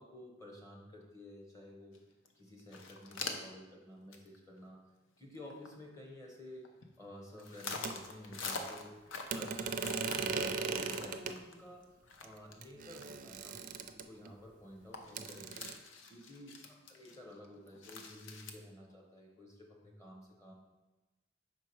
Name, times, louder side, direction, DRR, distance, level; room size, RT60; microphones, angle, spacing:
voice 1, 0.0-2.0 2.4-4.8 5.2-6.7 7.0-9.0 9.3-11.9 12.2-15.7 16.1-20.5, left 1 dB, 15° left, -1 dB, 0.9 m, -52 dB
sound 1, 1.9-2.0 2.2-2.3 2.6-3.6 4.1-4.4 4.7-4.8 5.2-5.7 6.4-7.0 7.4-12.7 13.0-13.1 13.5-13.6 14.1-14.2 14.5-14.6 14.9-18.5, left 4 dB, 90° left, 0.7 m, -45 dB
sound 2, 7.8-7.9 9.3-11.4 12.2-12.3 12.6-14.3 15.1-15.7, right 5 dB, 45° right, 0.4 m, -38 dB
5.6 x 4.6 x 4.6 m, 1.1 s
head